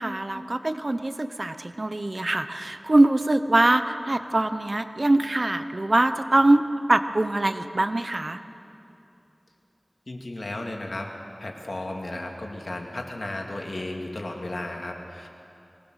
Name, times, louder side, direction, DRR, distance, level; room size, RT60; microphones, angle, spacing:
voice 1, 0.0-8.4, right 2 dB, 55° right, 10 dB, 0.9 m, -23 dB
voice 2, 10.1-11.1 11.4-15.3, left 1 dB, 70° left, 1 dB, 2.5 m, -34 dB
22.5 x 19.5 x 6.5 m, 2.7 s
wide cardioid pair, 50°, 0 cm